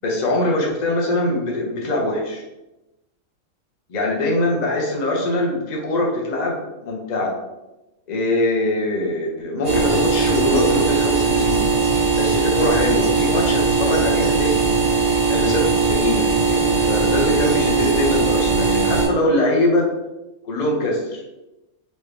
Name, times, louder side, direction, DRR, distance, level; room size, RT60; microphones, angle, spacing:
voice 1, 0.0-2.4 3.9-7.3 8.1-11.7 12.2-14.7 15.3-19.9 20.4-21.2, left 1 dB, 35° left, -1 dB, 0.8 m, -22 dB
sound 1, 9.6-19.1, right 4 dB, 55° right, 1.8 m, -19 dB
4.1 x 3.1 x 3.3 m, 0.98 s
omnidirectional pair, 1.4 m